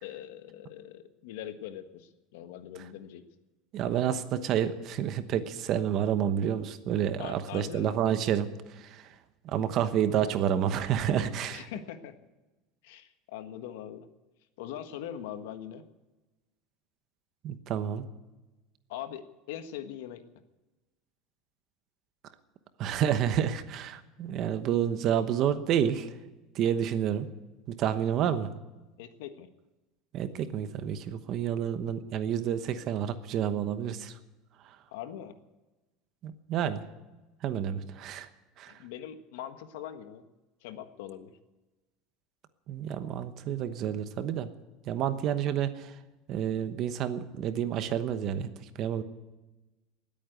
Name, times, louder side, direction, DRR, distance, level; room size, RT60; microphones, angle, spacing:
voice 1, 0.0-3.2 7.2-7.9 11.5-12.1 12.8-14.1 14.6-15.8 18.9-20.2 29.0-29.5 34.9-35.3 38.6-40.2 40.6-41.4, left 10 dB, 80° left, 9 dB, 1.5 m, -42 dB
voice 2, 3.7-9.1 9.4-11.7 17.4-18.1 22.8-26.1 26.5-27.3 27.7-28.5 30.1-34.1 34.6-34.8 36.2-36.8 37.4-38.3 38.6-38.7 42.7-44.5 44.8-45.9 46.3-48.5 48.8-49.0, right 9 dB, 35° right, 11 dB, 1.0 m, -29 dB
19.5 x 8.8 x 8.1 m, 1.1 s
cardioid pair, 175°, 0 cm